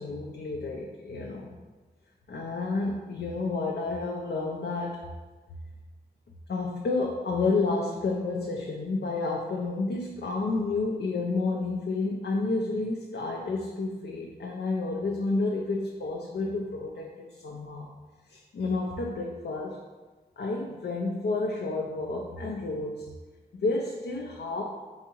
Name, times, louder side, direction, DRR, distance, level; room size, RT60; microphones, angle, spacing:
voice 1, 0.0-1.6 2.3-5.0 6.5-17.9 18.3-19.8 20.4-23.1 23.5-24.6, left 3 dB, 80° left, -1 dB, 0.4 m, -30 dB
3.9 x 3.5 x 3.0 m, 1.3 s
wide cardioid pair, 55°, 17 cm